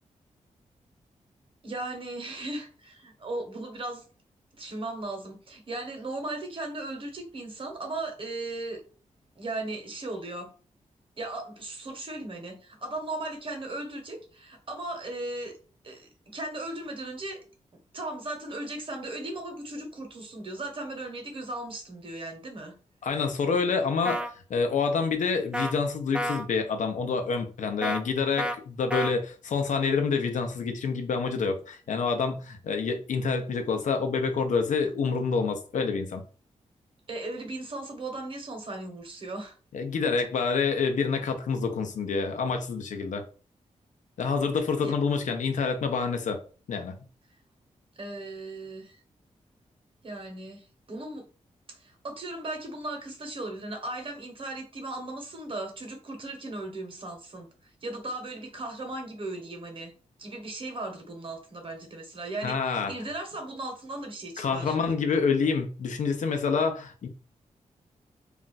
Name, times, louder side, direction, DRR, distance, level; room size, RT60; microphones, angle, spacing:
voice 1, 1.6-4.0 4.6-8.8 9.4-10.5 11.2-15.5 15.8-17.4 17.9-22.7 37.1-39.5 44.8-44.9 48.0-49.0 50.0-51.2 51.7-57.5 57.8-59.9 60.2-64.8, right 2 dB, 45° right, 1.0 m, -37 dB
voice 2, 23.0-24.2 24.5-36.2 39.7-43.2 44.2-46.4 46.7-47.0 62.4-62.9 64.4-67.1, left 5 dB, 75° left, 0.6 m, -27 dB
sound 1, 24.0-24.3 25.5-25.7 26.1-26.5 27.8-28.0 28.4-28.6 28.9-29.1, equal, 10° right, 0.3 m, -29 dB
2.4 x 2.2 x 3.9 m
cardioid pair, 80°, 13 cm